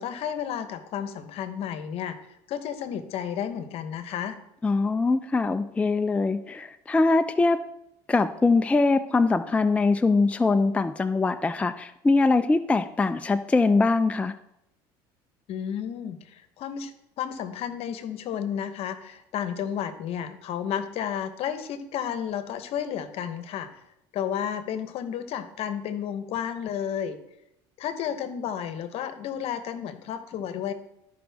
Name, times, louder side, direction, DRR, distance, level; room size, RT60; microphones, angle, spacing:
voice 1, 0.0-2.2 2.5-4.4 15.5-16.9 17.2-23.7 24.1-27.2 27.8-30.7, left 9 dB, 60° left, 11 dB, 0.9 m, -32 dB
voice 2, 4.6-7.6 8.1-14.3, left 3 dB, 10° left, 9 dB, 0.4 m, -22 dB
13.0 x 5.1 x 3.5 m, 0.81 s
supercardioid pair, 100°, 11 cm